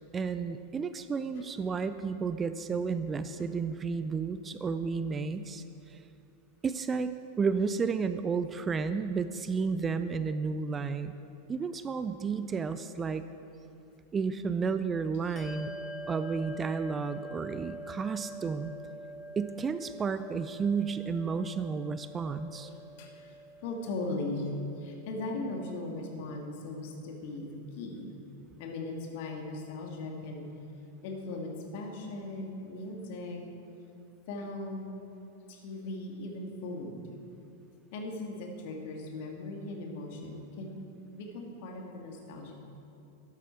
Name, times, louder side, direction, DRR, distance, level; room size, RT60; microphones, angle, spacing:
voice 1, 0.1-6.0 6.6-11.1 11.5-13.2 14.1-15.7 16.1-18.7 19.4-22.7, right 5 dB, 20° right, 12 dB, 0.4 m, -32 dB
Bell, 15.4-25.3, right 1 dB, 20° left, 1.1 m, -45 dB
voice 2, 22.5-28.1 28.6-30.5 31.0-33.4 34.3-35.1 35.5-37.2 37.9-40.8 41.1-42.6, left 2 dB, 50° left, 1 dB, 2.0 m, -38 dB
13.0 x 11.0 x 4.5 m, 2.7 s
figure-of-eight pair, 90°, 0 cm